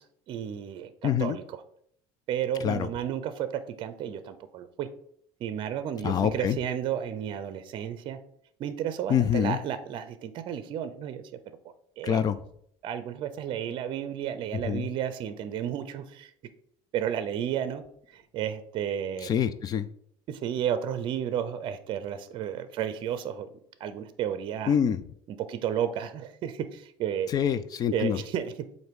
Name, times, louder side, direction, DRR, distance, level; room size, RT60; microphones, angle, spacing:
voice 1, 0.0-1.4 2.3-4.9 5.4-8.2 8.6-11.2 12.0-12.2 12.8-16.3 16.9-17.8 18.1-19.3 20.3-23.5 23.8-24.7 25.3-27.3 27.9-28.4, right 9 dB, 45° right, 12 dB, 0.6 m, -32 dB
voice 2, 1.0-1.4 2.6-2.9 6.0-6.6 9.1-9.6 12.0-12.4 14.7-14.9 19.2-19.9 24.7-25.0 27.3-28.2, left 8 dB, 35° left, 13 dB, 0.4 m, -25 dB
7.7 x 2.7 x 5.1 m, 0.67 s
cardioid pair, 135°, 11 cm